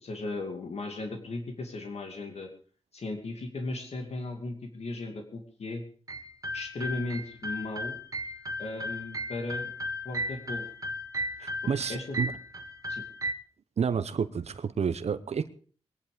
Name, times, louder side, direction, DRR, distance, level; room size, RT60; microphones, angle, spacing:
voice 1, 0.0-2.5 2.9-5.8 6.5-8.0 8.6-9.7 10.0-10.7 11.9-12.2 12.9-13.0, left 2 dB, 70° left, 4 dB, 2.7 m, -36 dB
sound 1, 6.1-13.3, equal, 30° right, 1.8 m, -35 dB
voice 2, 11.4-12.3 13.8-15.5, right 6 dB, 75° right, 12 dB, 0.9 m, -30 dB
21.5 x 11.0 x 5.1 m, 0.43 s
wide cardioid pair, 110°, 11 cm